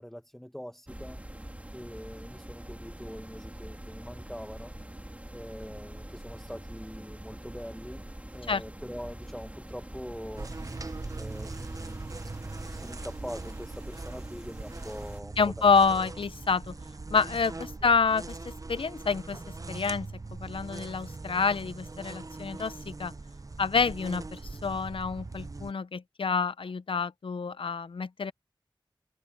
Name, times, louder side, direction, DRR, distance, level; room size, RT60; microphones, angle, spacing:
voice 1, 0.0-1.4 1.7-4.7 5.3-8.0 8.3-10.5 11.2-15.5, equal, 5° left, 1.2 m, -43 dB
sound 1, 0.9-15.2, right 1 dB, 15° right, 2.8 m, -44 dB
sound 2, 10.4-25.7, right 3 dB, 40° right, 0.6 m, -41 dB
voice 2, 15.4-16.8 17.1-19.4 19.7-23.1 23.6-28.3, left 5 dB, 85° left, 0.6 m, -28 dB
wide cardioid pair, 55°, 9 cm